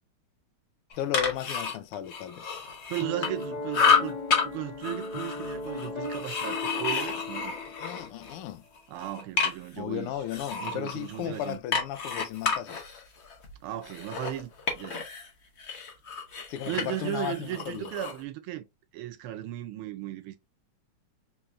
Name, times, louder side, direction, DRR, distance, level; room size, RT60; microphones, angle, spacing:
sound 1, 0.9-3.4 3.7-4.4 4.8-8.4 8.8-9.8 10.3-15.3 15.6-18.2, left 5 dB, 60° left, 0.7 m, -30 dB
voice 1, 1.0-2.6 7.7-8.6 9.8-12.8 16.5-17.9, left 11 dB, 90° left, 1.6 m, -35 dB
voice 2, 2.9-7.6 8.9-10.1 10.6-11.6 13.6-15.0 16.7-18.6 18.9-20.4, right 13 dB, 80° right, 1.5 m, -36 dB
Piano, 3.0-8.3, left 2 dB, 25° left, 1.0 m, -37 dB
4.6 x 3.0 x 2.4 m
omnidirectional pair, 2.4 m